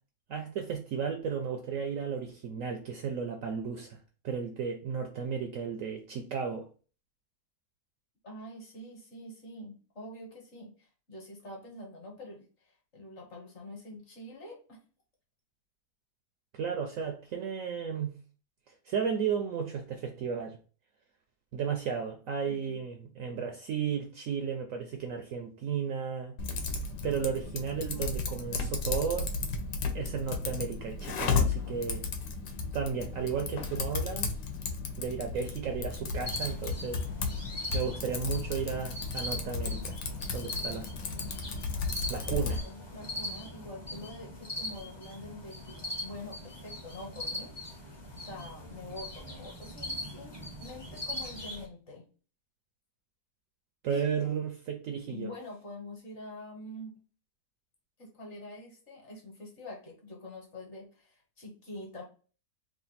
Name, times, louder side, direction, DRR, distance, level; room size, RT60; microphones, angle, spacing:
voice 1, 0.3-4.0 4.2-6.7 16.5-18.1 18.9-20.6 21.5-26.3 27.0-29.3 29.9-32.0 32.7-34.3 35.0-37.0 37.7-40.0 40.3-40.9 42.1-42.6 53.8-55.3, right 6 dB, 70° right, 0.8 m, -34 dB
voice 2, 8.2-12.4 12.9-14.8 22.4-22.8 27.9-28.6 42.4-47.5 48.2-52.1 53.9-54.1 55.1-57.0 58.0-62.0, left 1 dB, 45° left, 1.3 m, -46 dB
Typing, 26.4-42.6, left 4 dB, 80° left, 1.3 m, -34 dB
sound 1, 36.2-51.7, left 1 dB, 20° left, 0.7 m, -41 dB
3.3 x 2.5 x 3.9 m
omnidirectional pair, 1.8 m